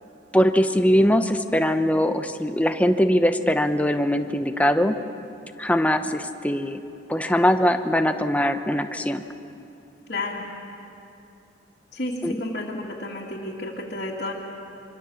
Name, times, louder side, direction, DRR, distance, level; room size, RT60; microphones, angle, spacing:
voice 1, 0.3-5.0 5.6-6.8 7.1-9.2 12.2-12.4, equal, 10° left, 7 dB, 0.9 m, -21 dB
voice 2, 10.1-10.4 11.9-14.3, left 2 dB, 55° left, -6 dB, 2.6 m, -31 dB
25.5 x 25.5 x 7.2 m, 2.7 s
head